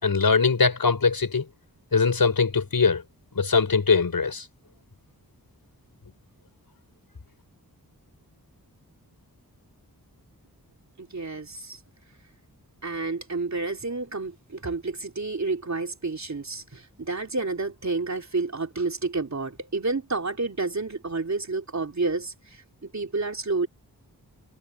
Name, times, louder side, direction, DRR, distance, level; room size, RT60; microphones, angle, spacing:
voice 1, 0.0-1.5 1.9-3.0 3.3-4.5, left 4 dB, 65° left, 4.6 m, -21 dB
voice 2, 11.0-11.8 12.8-23.7, right 3 dB, 45° right, 3.4 m, -30 dB
wide cardioid pair, 75°, 37 cm